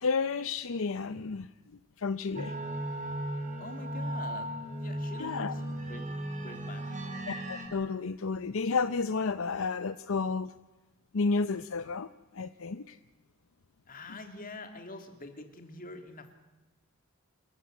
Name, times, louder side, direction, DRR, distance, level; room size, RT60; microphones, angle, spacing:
voice 1, 0.0-1.5 2.0-2.6 5.2-5.5 7.3-10.5 11.1-13.0, left 4 dB, 70° left, 13 dB, 0.7 m, -31 dB
sound 1, 2.4-7.7, right 1 dB, 35° right, 4.4 m, -36 dB
voice 2, 3.6-7.0 13.9-16.3, left 2 dB, 40° left, 6 dB, 2.8 m, -46 dB
28.5 x 14.0 x 9.4 m, 1.1 s
head